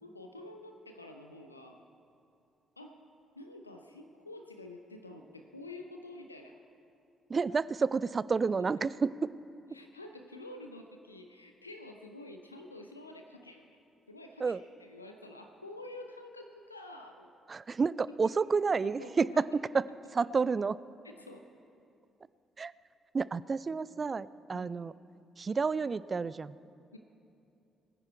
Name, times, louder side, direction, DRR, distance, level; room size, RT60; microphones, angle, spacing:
voice 1, 0.0-1.8 2.8-3.0 3.4-6.6 9.7-13.8 14.1-17.3 18.8-19.5 21.0-21.5 24.5-24.8 26.9-27.0, left 2 dB, 85° left, 4 dB, 0.5 m, -48 dB
voice 2, 7.3-9.1 14.4-14.6 17.5-20.8 22.6-22.7 23.1-24.9 25.4-26.6, right 5 dB, 35° right, 19 dB, 0.3 m, -30 dB
21.0 x 9.7 x 4.6 m, 2.7 s
figure-of-eight pair, 40°, 0 cm